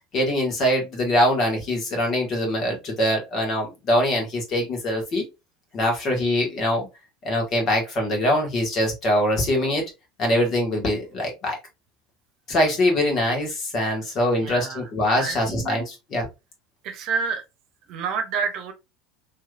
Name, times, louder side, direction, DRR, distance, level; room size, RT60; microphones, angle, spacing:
voice 1, 0.1-5.2 5.7-6.9 7.2-9.8 10.2-11.6 12.5-16.3, left 1 dB, 40° left, 1.8 m, -23 dB
voice 2, 14.4-14.8 15.2-15.8 16.8-17.4 17.9-18.7, right 6 dB, 50° right, 0.9 m, -28 dB
3.3 x 3.1 x 2.4 m
hypercardioid pair, 80°, 0 cm